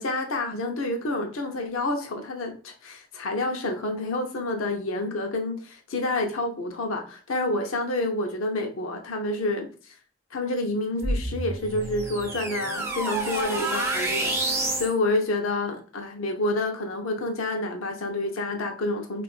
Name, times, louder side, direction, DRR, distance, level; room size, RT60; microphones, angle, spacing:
voice 1, 0.0-9.7 10.3-19.2, left 2 dB, 80° left, 3 dB, 0.6 m, -28 dB
sound 1, 11.0-14.9, right 2 dB, 10° right, 0.4 m, -28 dB
3.7 x 2.4 x 2.3 m, 0.39 s
head